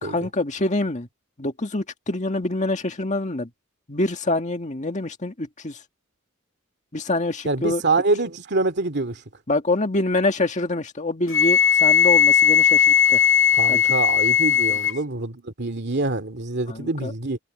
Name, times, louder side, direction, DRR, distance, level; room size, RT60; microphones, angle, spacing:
voice 1, 0.0-1.1 1.4-3.5 3.9-5.8 6.9-7.8 9.5-13.2 13.7-13.8 16.7-17.1, left 2 dB, 35° left, 1.9 m, -25 dB
voice 2, 7.4-9.2 13.5-17.4, right 3 dB, 55° right, 2.4 m, -25 dB
Wind instrument woodwind instrument, 11.3-15.0, left 8 dB, 70° left, 2.0 m, -17 dB
head